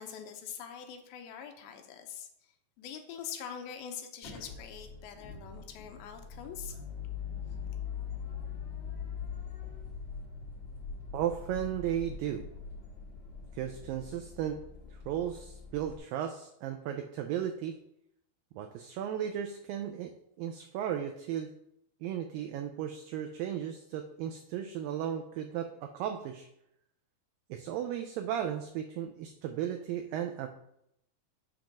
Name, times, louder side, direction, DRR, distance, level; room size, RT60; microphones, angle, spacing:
voice 1, 0.0-2.5 2.8-6.8, left 8 dB, 80° left, 5 dB, 2.5 m, -44 dB
sound 1, 4.2-16.0, left 6 dB, 50° left, 2.0 m, -42 dB
voice 2, 11.1-12.4 13.5-14.6 14.9-17.8 18.5-21.5 22.0-26.5 27.5-30.5, right 10 dB, 85° right, 5 dB, 2.0 m, -35 dB
7.4 x 3.0 x 5.8 m, 0.78 s
omnidirectional pair, 4.5 m